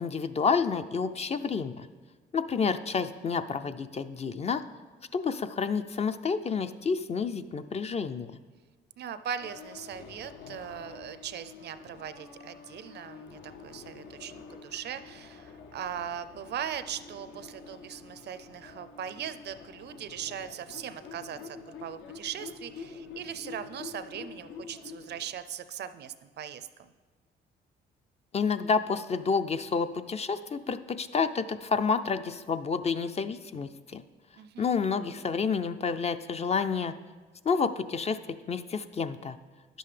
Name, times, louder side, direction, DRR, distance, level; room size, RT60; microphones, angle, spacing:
voice 1, 0.0-1.9 2.3-4.6 5.1-8.3 28.3-34.0 34.6-36.9 37.4-38.2 38.5-39.4, left 5 dB, 35° left, 11 dB, 0.4 m, -29 dB
voice 2, 9.0-26.9 34.4-34.7, right 9 dB, 55° right, 12 dB, 0.5 m, -39 dB
sound 1, 9.4-25.3, left 5 dB, 70° left, 0.7 m, -47 dB
10.0 x 7.7 x 3.3 m, 1.4 s
supercardioid pair, 75°, 20 cm